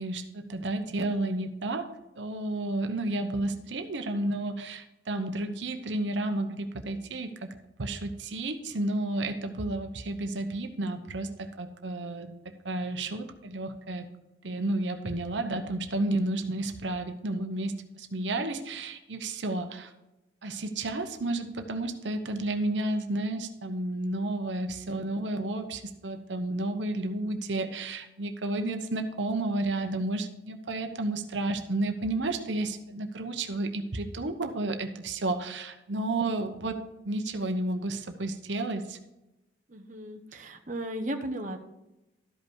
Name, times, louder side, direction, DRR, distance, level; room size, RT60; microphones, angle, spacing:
voice 1, 0.0-1.9 2.2-14.1 14.4-19.9 20.4-36.8 37.0-39.0, right 2 dB, 85° right, 7 dB, 0.9 m, -32 dB
voice 2, 39.7-41.6, right 1 dB, 45° right, 4 dB, 0.9 m, -35 dB
13.0 x 5.4 x 4.7 m, 0.95 s
head